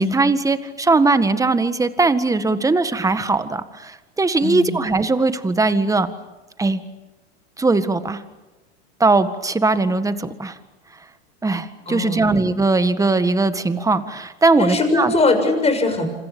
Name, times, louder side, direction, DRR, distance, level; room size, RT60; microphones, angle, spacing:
voice 1, 0.0-6.1 6.6-6.8 7.6-8.2 9.0-10.6 11.4-15.1, right 3 dB, 10° right, 11 dB, 1.7 m, -19 dB
voice 2, 4.4-4.8 11.9-12.3 14.6-16.1, left 3 dB, 20° left, 6 dB, 6.9 m, -20 dB
27.0 x 27.0 x 7.1 m, 1.1 s
supercardioid pair, 115°, 33 cm